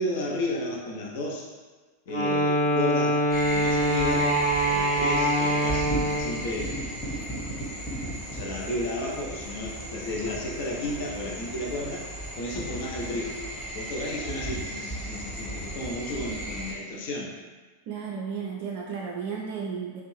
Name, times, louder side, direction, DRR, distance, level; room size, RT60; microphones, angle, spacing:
voice 1, 0.0-1.4 2.1-4.3 4.7-5.9 6.2-6.8 8.3-12.0 12.4-13.3 13.7-17.3, left 1 dB, 50° left, -2 dB, 0.6 m, -33 dB
Wind instrument woodwind instrument, 2.1-6.4, right 1 dB, 80° left, 1.2 m, -24 dB
sound 1, 3.3-16.7, right 1 dB, 20° left, 0.9 m, -35 dB
voice 2, 17.9-20.0, right 6 dB, 45° right, -2 dB, 0.3 m, -34 dB
3.0 x 2.5 x 3.1 m, 1.3 s
figure-of-eight pair, 90°, 0 cm